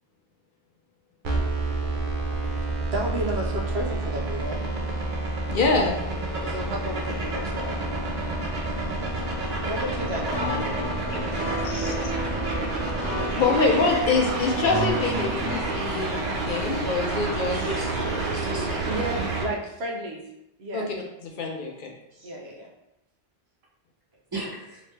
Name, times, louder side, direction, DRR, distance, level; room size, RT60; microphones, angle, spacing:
sound 1, 1.2-19.4, right 2 dB, 55° right, 0.8 m, -29 dB
voice 1, 2.9-4.6 6.4-7.8 9.3-12.0 13.4-13.6 18.9-20.2 20.6-20.9 22.2-22.7, right 1 dB, 85° right, -1 dB, 1.0 m, -33 dB
voice 2, 5.5-6.0 11.6-11.9 13.4-17.6 18.6-18.7 20.7-21.0 21.2-21.9, left 4 dB, 60° left, 1 dB, 0.7 m, -25 dB
sound 2, 10.3-15.7, equal, 5° right, 1.4 m, -32 dB
voice 3, 17.5-19.0 22.1-22.3 24.3-24.8, right 1 dB, 25° right, -3 dB, 0.7 m, -35 dB
3.4 x 2.9 x 3.2 m, 0.86 s
omnidirectional pair, 1.1 m